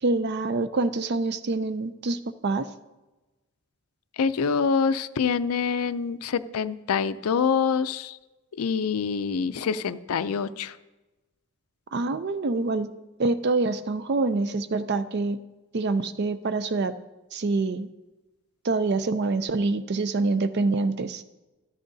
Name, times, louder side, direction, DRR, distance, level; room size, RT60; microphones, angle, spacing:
voice 1, 0.0-2.7 11.9-12.9 13.2-15.4 15.7-16.9 17.3-17.9 18.6-21.2, right 3 dB, 50° right, 12 dB, 0.5 m, -26 dB
voice 2, 4.2-8.2 8.5-10.8, left 6 dB, 75° left, 14 dB, 0.4 m, -26 dB
14.0 x 12.0 x 2.7 m, 1.1 s
head